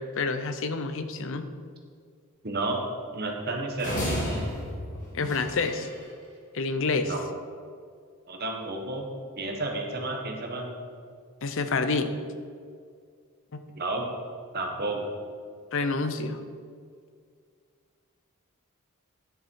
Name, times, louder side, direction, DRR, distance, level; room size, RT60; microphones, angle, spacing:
voice 1, 0.0-1.5 5.1-5.9 6.5-7.1 11.4-12.1 13.5-13.6 15.7-16.4, left 4 dB, 60° left, 9 dB, 0.6 m, -28 dB
voice 2, 2.4-2.8 3.1-3.9 7.0-7.2 8.3-9.1 9.4-10.7 13.7-14.1 14.5-15.1, right 2 dB, 45° right, 2 dB, 1.4 m, -31 dB
sound 1, 3.8-6.0, equal, 35° left, 2.4 m, -32 dB
10.5 x 6.8 x 4.7 m, 2.2 s
head